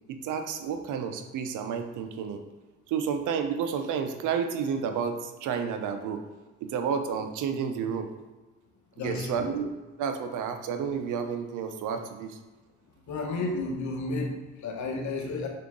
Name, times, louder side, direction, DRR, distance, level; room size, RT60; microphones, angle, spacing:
voice 1, 0.1-2.4 2.9-6.2 6.6-8.1 9.0-9.7 10.0-12.4, right 6 dB, 85° right, 7 dB, 0.7 m, -31 dB
voice 2, 9.0-9.4 13.1-15.5, left 3 dB, 70° left, 2 dB, 1.1 m, -32 dB
5.7 x 4.7 x 3.7 m, 1.2 s
cardioid pair, 90°, 30 cm